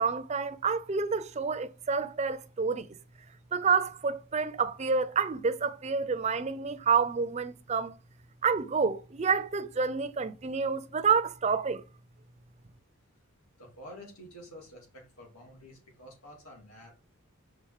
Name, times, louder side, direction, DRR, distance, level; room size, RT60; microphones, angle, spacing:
voice 1, 0.0-2.9 3.5-7.9 8.4-11.8, right 5 dB, 30° right, 0.4 m, -28 dB
voice 2, 13.6-16.9, equal, 90° left, 2.6 m, -49 dB
5.5 x 3.8 x 4.9 m
head